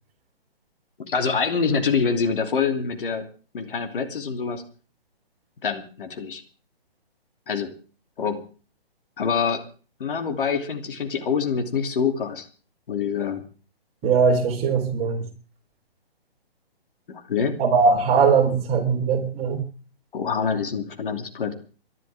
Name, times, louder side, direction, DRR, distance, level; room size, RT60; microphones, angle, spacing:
voice 1, 1.0-3.3 3.5-4.6 5.6-6.4 7.5-7.7 8.2-8.4 9.2-9.6 10.0-12.4 12.9-13.4 17.1-17.6 20.1-21.5, left 6 dB, 60° left, 5 dB, 3.0 m, -25 dB
voice 2, 14.0-15.3 17.6-19.6, right 5 dB, 20° right, 2 dB, 3.9 m, -20 dB
29.5 x 12.5 x 3.5 m, 0.38 s
hypercardioid pair, 145°, 31 cm